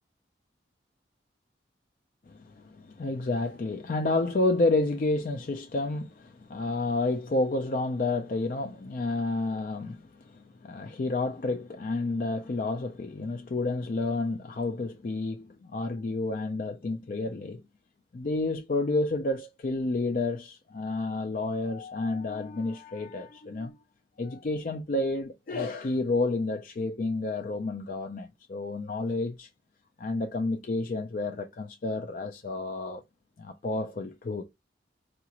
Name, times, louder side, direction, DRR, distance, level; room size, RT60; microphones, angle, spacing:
voice 1, 2.3-17.6 18.1-23.8 24.2-29.5 30.0-33.0 33.4-34.4, left 2 dB, 50° left, 0.4 m, -30 dB
4.7 x 2.5 x 2.9 m
head